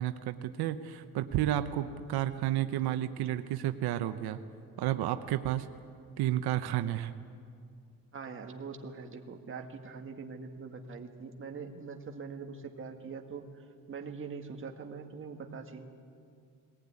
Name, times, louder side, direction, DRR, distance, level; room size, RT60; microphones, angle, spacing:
voice 1, 0.0-4.4 4.8-5.7 6.2-7.1, right 12 dB, 90° right, 9 dB, 0.9 m, -31 dB
voice 2, 8.1-15.9, right 5 dB, 35° right, 3 dB, 1.9 m, -43 dB
21.0 x 19.0 x 9.7 m, 2.3 s
cardioid pair, 150°, 37 cm